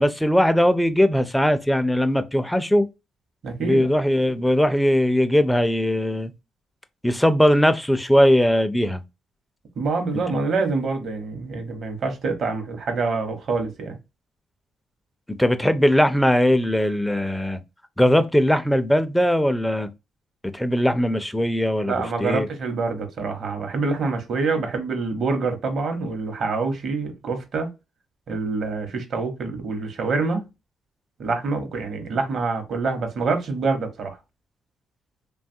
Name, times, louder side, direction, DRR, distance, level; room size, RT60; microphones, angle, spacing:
voice 1, 0.0-2.9 3.6-6.3 7.0-9.0 10.3-10.4 15.4-17.6 18.0-19.9 20.5-22.5, equal, 5° left, 0.4 m, -20 dB
voice 2, 3.4-3.9 9.8-14.0 21.8-27.7 28.3-30.5 31.2-34.2, right 4 dB, 60° right, 0.9 m, -26 dB
3.0 x 2.3 x 2.6 m
cardioid pair, 90°, 0 cm